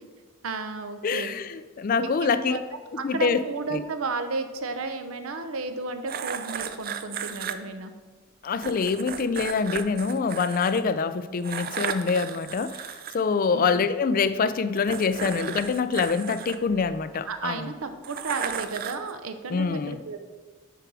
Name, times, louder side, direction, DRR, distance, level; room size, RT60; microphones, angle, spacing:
voice 1, 0.4-1.4 2.0-2.6 3.0-7.9 13.5-13.7 17.3-20.2, right 4 dB, 70° right, 8 dB, 0.7 m, -33 dB
voice 2, 1.0-2.6 2.9-3.4 3.7-3.8 8.4-12.8 13.1-17.6 19.5-20.0, left 5 dB, 40° left, 13 dB, 0.3 m, -25 dB
sound 1, 6.1-7.5 8.6-10.8 11.4-13.1 14.7-17.2 18.0-19.1, right 7 dB, 40° right, 0.4 m, -34 dB
6.7 x 4.7 x 6.1 m, 1.4 s
head